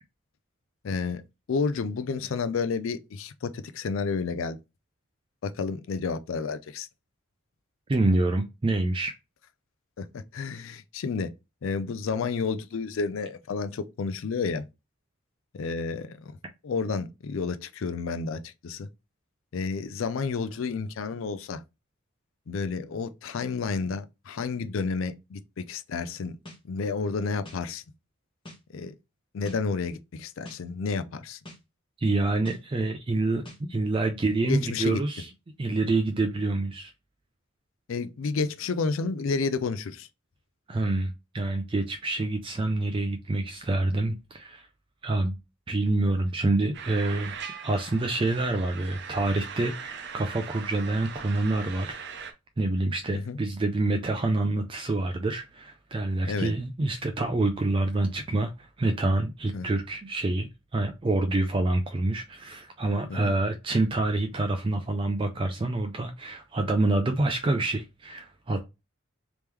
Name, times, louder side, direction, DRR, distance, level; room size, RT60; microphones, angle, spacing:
voice 1, 0.8-1.2 1.5-4.6 5.4-6.9 10.0-11.3 11.6-14.6 15.5-16.4 16.6-18.9 19.5-21.6 22.5-26.4 26.6-27.8 28.7-28.9 29.3-31.4 34.4-35.0 37.9-40.1 53.1-53.4 56.2-56.5 59.5-59.7 63.1-63.3, left 4 dB, 70° left, 0.4 m, -30 dB
voice 2, 7.9-9.1 32.0-35.3 35.6-36.9 40.7-44.7 45.0-45.3 45.7-47.3 47.6-52.0 52.6-68.7, right 2 dB, 25° right, 0.3 m, -27 dB
sound 1, 26.5-26.6 27.4-27.6 28.4-28.6 29.5-29.6 30.4-30.6 31.4-31.6 32.5-32.6 33.4-33.6, left 1 dB, 25° left, 1.0 m, -44 dB
sound 2, 46.7-52.3, right 6 dB, 55° right, 0.7 m, -40 dB
3.5 x 3.0 x 3.3 m
head